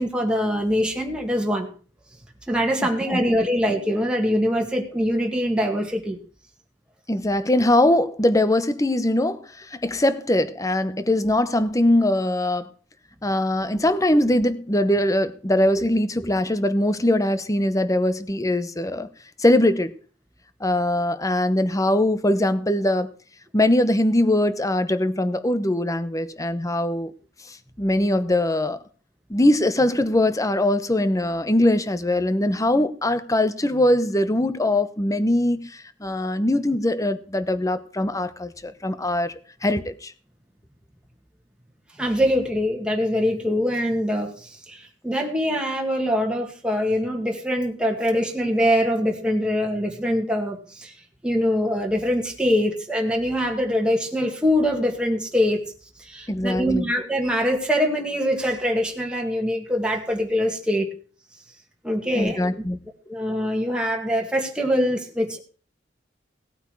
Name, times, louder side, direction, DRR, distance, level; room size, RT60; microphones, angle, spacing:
voice 1, 0.0-1.7 2.5-6.2 42.0-50.9 51.2-55.6 56.0-60.9 61.8-62.5 63.1-65.4, equal, 5° right, 2.1 m, -23 dB
voice 2, 7.1-12.7 13.2-19.1 19.4-19.9 20.6-23.1 23.5-27.1 27.5-28.8 29.3-39.3 39.6-40.1 56.3-56.9 62.1-62.8, left 1 dB, 20° left, 0.9 m, -21 dB
17.5 x 8.8 x 4.7 m
head